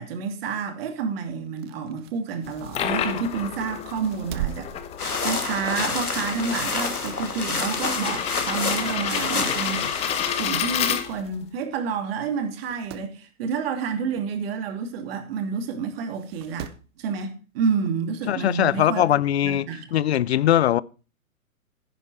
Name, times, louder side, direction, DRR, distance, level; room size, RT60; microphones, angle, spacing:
voice 1, 0.0-4.7 5.2-16.7 17.0-19.0 19.4-19.8, right 5 dB, 40° right, 2.8 m, -29 dB
sound 1, 1.4-3.4 3.9-5.7 6.1-6.3 7.6-8.4 8.9-9.0 9.9-10.0 10.2-10.3 10.5-10.6 11.5-11.6 12.0-12.1 12.4-13.1 15.0-15.1 16.1-16.9 18.2-18.3, right 14 dB, 20° right, 0.5 m, -39 dB
sound 2, 2.5-11.4, left 9 dB, 15° left, 0.8 m, -30 dB
sound 3, 5.0-10.5, left 4 dB, 90° left, 2.3 m, -28 dB
voice 2, 18.3-20.8, left 12 dB, 50° left, 0.6 m, -21 dB
10.5 x 10.0 x 4.7 m
figure-of-eight pair, 125°, 43 cm